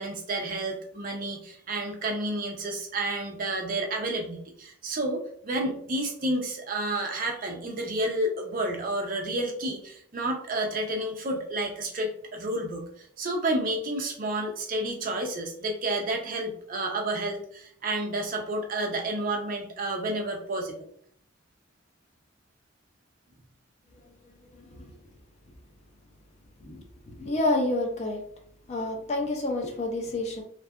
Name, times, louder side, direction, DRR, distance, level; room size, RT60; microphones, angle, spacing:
voice 1, 0.0-20.9, right 1 dB, 40° right, 2 dB, 0.4 m, -30 dB
voice 2, 27.2-28.2 28.7-30.4, left 2 dB, 30° left, 2 dB, 0.3 m, -28 dB
2.6 x 2.3 x 2.3 m, 0.62 s
head